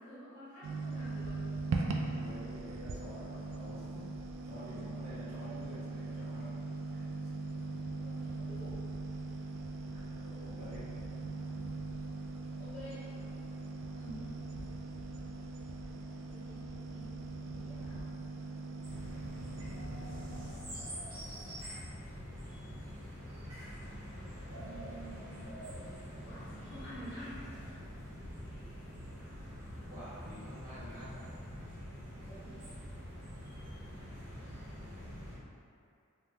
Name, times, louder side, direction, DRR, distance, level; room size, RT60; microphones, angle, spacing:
voice 1, 0.0-1.4 8.0-8.8 12.6-13.1 13.9-14.4 16.3-18.0 24.4-25.5 26.3-27.4 32.3-32.6, equal, 35° left, -11 dB, 0.8 m, -49 dB
sound 1, 0.6-20.5, right 3 dB, 65° right, 0.3 m, -40 dB
voice 2, 2.1-4.1 4.4-6.6 6.9-7.1 7.7-7.8 9.8-11.2 29.9-31.3 34.7-35.2, equal, 40° right, -12 dB, 1.2 m, -49 dB
sound 2, 18.8-35.4, equal, 85° right, 1.0 m, -45 dB
2.7 x 2.3 x 3.4 m, 2.5 s
head